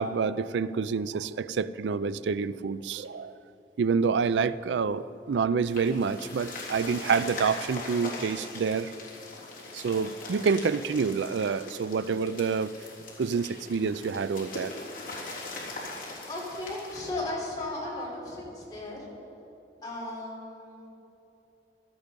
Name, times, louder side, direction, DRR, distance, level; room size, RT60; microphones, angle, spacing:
voice 1, 0.0-3.3 3.8-8.9 9.7-12.7 13.2-14.7, right 5 dB, 90° right, 16 dB, 0.4 m, -28 dB
sound 1, 5.6-17.1, left 2 dB, 50° left, 3.4 m, -41 dB
voice 2, 16.3-19.0 19.8-20.9, left 2 dB, 25° left, -5 dB, 4.2 m, -36 dB
17.0 x 13.0 x 5.3 m, 2.9 s
head